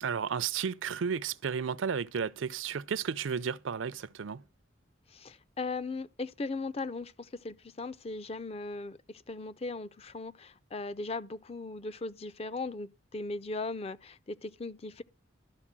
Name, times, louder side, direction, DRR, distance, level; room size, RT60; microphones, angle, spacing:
voice 1, 0.0-4.4, right 6 dB, 85° right, 0.5 m, -33 dB
voice 2, 5.1-15.0, left 3 dB, 30° left, 0.5 m, -38 dB
12.5 x 4.3 x 7.4 m
head